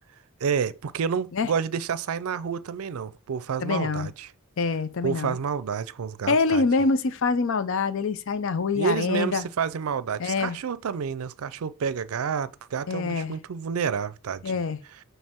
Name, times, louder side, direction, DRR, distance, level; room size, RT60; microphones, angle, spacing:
voice 1, 0.4-4.3 5.0-6.6 8.7-14.5, right 6 dB, 85° right, 0.5 m, -29 dB
voice 2, 3.6-4.1 4.6-5.4 6.3-9.4 10.2-10.6 12.9-13.3 14.4-14.8, left 4 dB, 65° left, 0.6 m, -25 dB
6.6 x 3.3 x 4.4 m
head